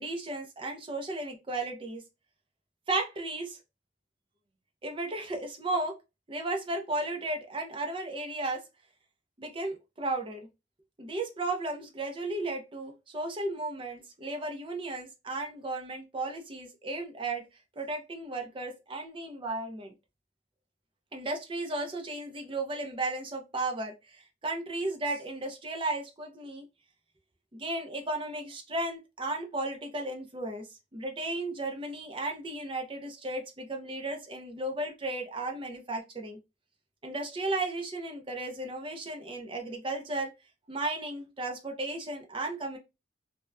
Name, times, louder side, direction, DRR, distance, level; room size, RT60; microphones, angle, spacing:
voice 1, 0.0-2.0 2.9-3.6 4.8-5.9 6.3-8.6 9.4-10.5 11.0-17.4 17.8-19.9 21.1-26.7 27.5-30.7 30.9-36.4 37.0-40.3 40.7-42.8, right 2 dB, 30° right, 3 dB, 0.6 m, -34 dB
2.7 x 2.1 x 2.3 m, 0.25 s
head